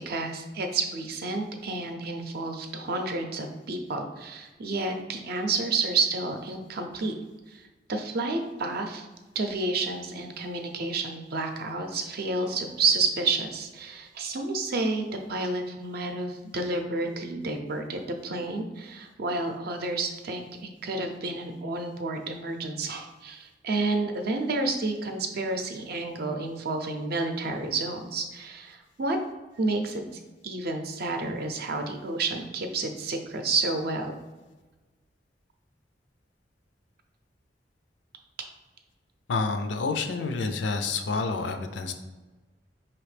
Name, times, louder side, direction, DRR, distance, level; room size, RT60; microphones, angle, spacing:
voice 1, 0.1-7.1 7.5-9.1 9.3-20.5 20.8-29.2 29.6-30.0 30.4-34.1, right 3 dB, 60° right, 5 dB, 0.6 m, -30 dB
voice 2, 39.3-41.9, left 4 dB, 85° left, 7 dB, 0.5 m, -28 dB
4.9 x 3.0 x 3.3 m, 1.2 s
head